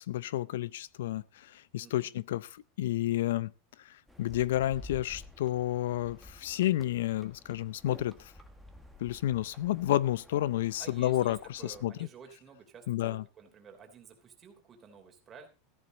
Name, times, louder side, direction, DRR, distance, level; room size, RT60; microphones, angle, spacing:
voice 1, 0.0-3.5 3.8-8.2 9.0-11.4 11.6-11.9 12.9-13.2, left 14 dB, 85° left, 0.6 m, -30 dB
voice 2, 1.8-2.1 10.8-15.5, right 6 dB, 20° right, 3.2 m, -52 dB
sound 1, 4.1-11.8, left 1 dB, ahead, 1.7 m, -52 dB
14.5 x 11.0 x 4.0 m
supercardioid pair, 155°, 0 cm